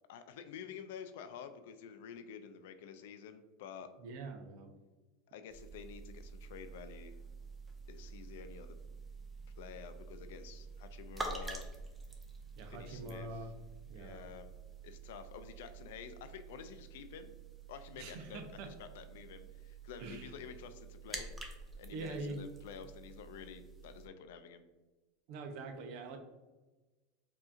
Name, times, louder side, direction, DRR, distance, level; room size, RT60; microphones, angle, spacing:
voice 1, 0.1-3.9 5.3-7.2 7.9-8.8 9.6-11.7 12.7-13.4 13.9-14.5 14.8-17.4 17.7-21.3 21.8-24.6, left 7 dB, 75° left, 9 dB, 0.4 m, -50 dB
voice 2, 4.0-4.7 12.6-13.5 13.9-14.3 18.0-18.7 20.0-20.3 21.9-22.4 25.3-26.2, right 2 dB, 60° right, 5 dB, 0.6 m, -44 dB
sound 1, 5.5-24.1, right 3 dB, 10° right, 0.6 m, -48 dB
4.8 x 2.7 x 2.5 m, 1.2 s
supercardioid pair, 115°, 0 cm